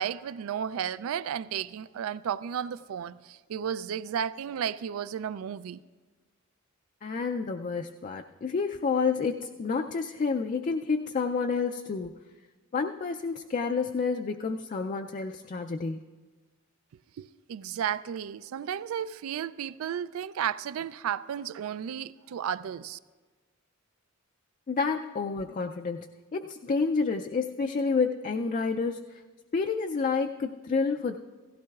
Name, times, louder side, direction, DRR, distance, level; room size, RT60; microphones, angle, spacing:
voice 1, 0.0-5.8 17.2-23.0, right 8 dB, 80° right, 0.3 m, -33 dB
voice 2, 7.0-12.2 12.7-16.0 24.7-29.0 29.5-31.2, left 4 dB, 35° left, 0.3 m, -29 dB
16.5 x 15.5 x 2.3 m
head